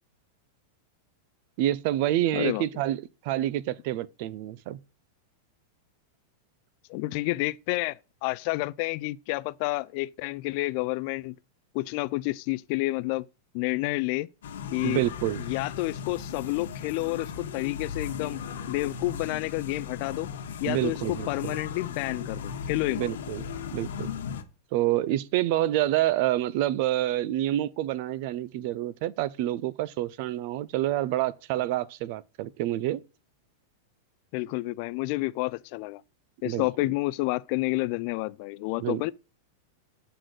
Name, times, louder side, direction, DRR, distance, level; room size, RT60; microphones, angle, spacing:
voice 1, 1.6-4.8 14.8-15.4 20.6-21.6 23.0-23.4 23.7-24.1 24.7-33.0 36.4-36.7 38.8-39.1, right 14 dB, 45° right, 0.4 m, -28 dB
voice 2, 2.3-2.6 6.9-11.3 11.7-13.2 13.5-14.3 14.7-15.0 15.4-18.4 18.7-20.3 20.6-23.1 34.3-36.0 36.4-39.1, left 20 dB, 40° left, 0.3 m, -29 dB
sound 1, 14.4-24.4, left 7 dB, 85° left, 1.2 m, -37 dB
7.7 x 4.0 x 6.5 m
supercardioid pair, 165°, 0 cm